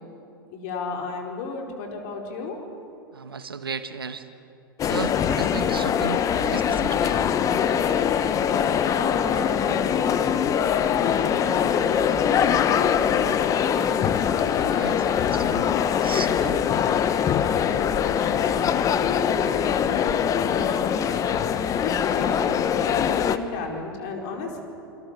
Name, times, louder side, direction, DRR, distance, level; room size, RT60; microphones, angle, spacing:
voice 1, 0.5-2.6 8.4-13.8 18.0-24.6, left 4 dB, 50° left, 2 dB, 4.6 m, -34 dB
voice 2, 3.1-4.3 4.8-7.2 14.6-17.0, right 5 dB, 75° right, 10 dB, 1.6 m, -35 dB
sound 1, 4.8-23.4, left 8 dB, 25° left, 1.2 m, -23 dB
28.5 x 25.5 x 6.8 m, 2.7 s
figure-of-eight pair, 95°, 12 cm